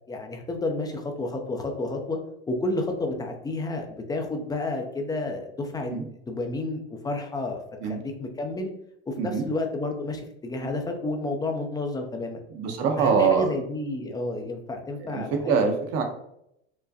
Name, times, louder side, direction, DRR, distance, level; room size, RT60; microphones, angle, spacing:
voice 1, 0.1-2.2 2.5-5.9 6.3-8.7 9.1-12.4 13.0-15.5, left 2 dB, 10° left, 4 dB, 0.6 m, -31 dB
voice 2, 12.5-13.5 15.0-16.0, right 5 dB, 50° right, 3 dB, 1.0 m, -24 dB
4.8 x 2.2 x 2.8 m, 0.76 s
hypercardioid pair, 105°, 32 cm